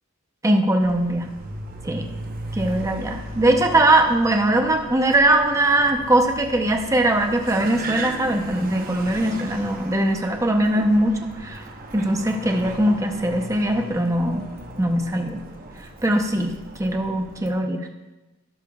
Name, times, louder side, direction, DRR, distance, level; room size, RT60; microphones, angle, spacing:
voice 1, 0.4-1.3 1.8-2.0 2.5-11.6 11.9-14.4 14.8-15.4 16.0-16.5 16.8-17.9, right 1 dB, 15° right, 4 dB, 0.7 m, -21 dB
Car, 0.8-17.6, right 2 dB, 45° right, 0.9 m, -37 dB
15.0 x 6.6 x 2.4 m, 1.1 s
head